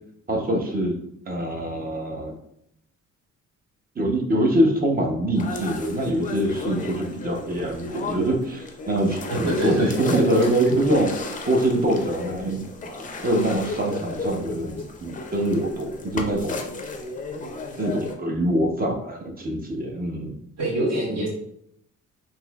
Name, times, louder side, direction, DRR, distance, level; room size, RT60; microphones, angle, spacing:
voice 1, 0.3-1.0 1.3-2.4 4.0-12.6 13.2-16.5 17.8-20.3, right 1 dB, 30° right, 2 dB, 0.8 m, -24 dB
sound 1, 5.3-18.2, left 3 dB, 25° left, 0.5 m, -34 dB
voice 2, 9.3-9.9 20.6-21.3, right 1 dB, 60° right, -4 dB, 1.5 m, -25 dB
4.0 x 2.7 x 2.3 m, 0.74 s
cardioid pair, 90°, 30 cm